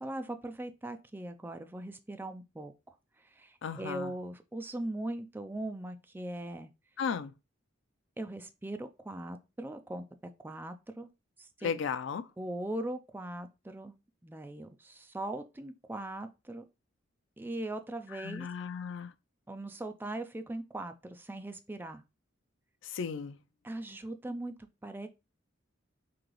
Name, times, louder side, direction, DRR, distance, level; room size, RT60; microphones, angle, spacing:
voice 1, 0.0-2.7 3.3-6.7 8.2-10.0 10.4-11.1 11.4-11.8 12.4-13.9 14.2-16.6 17.4-18.5 19.5-22.0 23.6-24.5 24.8-25.1, right 1 dB, 10° right, 0.4 m, -40 dB
voice 2, 3.6-4.1 7.0-7.3 11.6-12.3 18.1-19.1 22.8-23.4, left 6 dB, 65° left, 0.4 m, -35 dB
3.8 x 2.9 x 3.1 m
head